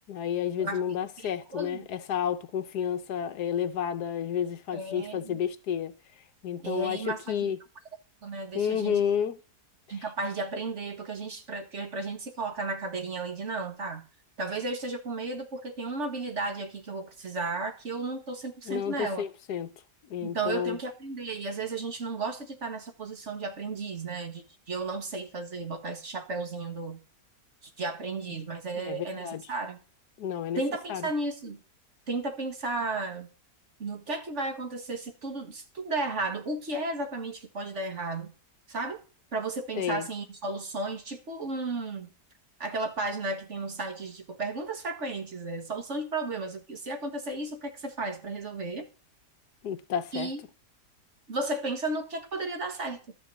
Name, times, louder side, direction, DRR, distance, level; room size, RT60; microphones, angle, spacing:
voice 1, 0.1-5.9 6.4-7.6 8.5-9.4 18.7-19.7 20.1-20.8 28.8-29.4 30.2-30.6 30.9-31.1 39.8-40.1 49.6-50.3, left 8 dB, 75° left, 1.3 m, -31 dB
voice 2, 1.5-1.9 4.7-5.4 6.6-7.5 8.2-9.0 9.9-14.0 14.4-19.2 20.2-27.0 27.6-29.8 30.6-31.6 32.1-33.3 33.8-38.3 38.7-39.0 39.3-42.1 42.6-48.9 50.1-50.4 51.3-53.1, right 3 dB, 45° right, 1.8 m, -34 dB
12.5 x 5.9 x 7.5 m
omnidirectional pair, 1.8 m